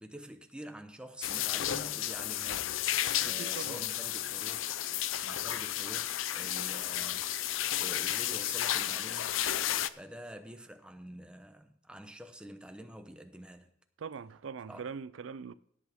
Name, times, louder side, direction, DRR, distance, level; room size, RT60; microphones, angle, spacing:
voice 1, 0.0-4.8 5.2-9.4 9.9-13.7 14.7-14.9, right 1 dB, 5° right, 0.9 m, -47 dB
sound 1, 1.2-9.9, left 12 dB, 80° left, 0.5 m, -32 dB
voice 2, 3.2-3.9 14.0-15.5, right 6 dB, 75° right, 0.4 m, -42 dB
17.0 x 8.3 x 3.6 m
head